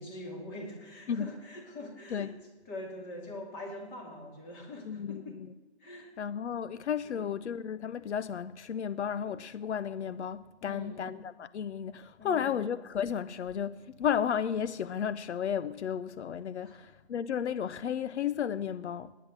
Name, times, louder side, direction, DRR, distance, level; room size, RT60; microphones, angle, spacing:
voice 1, 0.0-2.3 2.7-5.4 5.8-6.1 7.0-7.3 10.6-11.0 12.2-12.6 16.6-16.8, left 1 dB, 20° left, 2.5 m, -43 dB
voice 2, 4.9-5.2 6.2-19.1, left 8 dB, 80° left, 0.7 m, -33 dB
17.5 x 10.5 x 7.4 m
hypercardioid pair, 160°, 34 cm